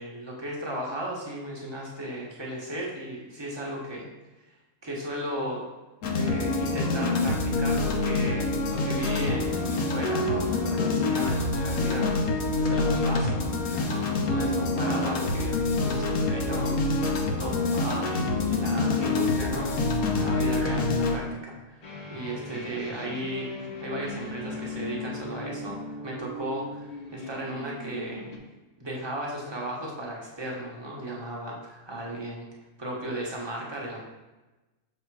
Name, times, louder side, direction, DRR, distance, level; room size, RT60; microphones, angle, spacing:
voice 1, 0.0-4.1 4.5-4.6 4.8-5.6 6.1-19.7 20.1-21.8 22.1-23.5 23.8-25.8 26.0-28.3 28.8-32.5 32.8-34.0, right 1 dB, 20° right, -3 dB, 1.1 m, -35 dB
sound 1, 6.0-21.2, left 2 dB, 85° left, 1.2 m, -26 dB
sound 2, 21.8-28.4, left 2 dB, 35° left, 0.8 m, -39 dB
6.5 x 3.3 x 4.7 m, 1.1 s
omnidirectional pair, 1.5 m